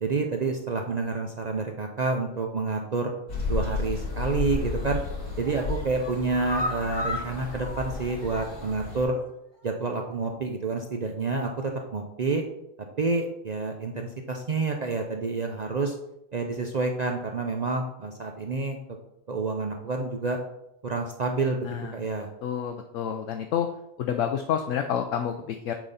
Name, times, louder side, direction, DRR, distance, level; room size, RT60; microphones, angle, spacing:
voice 1, 0.0-3.1 3.5-5.0 5.4-9.1 9.6-12.4 13.0-15.9 16.3-18.8 19.3-20.4 20.8-22.3, right 3 dB, 60° right, 3 dB, 0.4 m, -28 dB
sound 1, 3.3-9.1, left 4 dB, 85° left, 2.1 m, -33 dB
sound 2, 4.6-5.0 5.4-8.8 9.1-9.2 9.6-9.7, left 1 dB, 25° left, 0.7 m, -36 dB
voice 2, 21.6-21.9 22.4-23.7 24.0-25.7, left 8 dB, 70° left, 5 dB, 0.9 m, -29 dB
8.9 x 4.0 x 4.0 m, 0.84 s
omnidirectional pair, 1.4 m